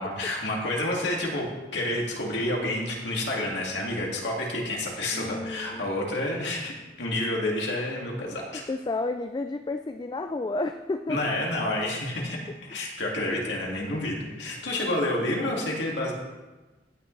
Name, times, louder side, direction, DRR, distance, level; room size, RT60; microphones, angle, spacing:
voice 1, 0.0-1.5 1.7-6.7 7.0-8.6 11.1-16.1, left 1 dB, 80° left, -2 dB, 2.3 m, -29 dB
voice 2, 0.6-1.0 5.1-5.9 8.7-11.4 13.5-13.6 13.8-13.9, left 2 dB, 25° left, 8 dB, 0.3 m, -32 dB
16.0 x 6.5 x 3.3 m, 1.2 s
head